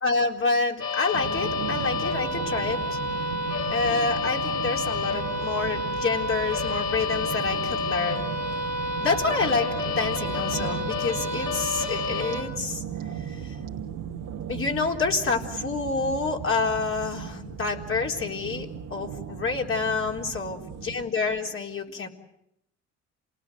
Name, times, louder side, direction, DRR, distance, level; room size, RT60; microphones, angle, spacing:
voice 1, 0.0-3.0 3.7-8.2 9.0-12.8 13.3-13.6 14.5-22.1, left 4 dB, 45° left, 0 dB, 4.1 m, -28 dB
sound 1, 0.8-12.4, left 3 dB, 70° left, 5.5 m, -29 dB
sound 2, 1.1-21.0, right 8 dB, 90° right, 2.3 m, -36 dB
28.0 x 19.0 x 8.0 m, 0.77 s
cardioid pair, 90°, 30 cm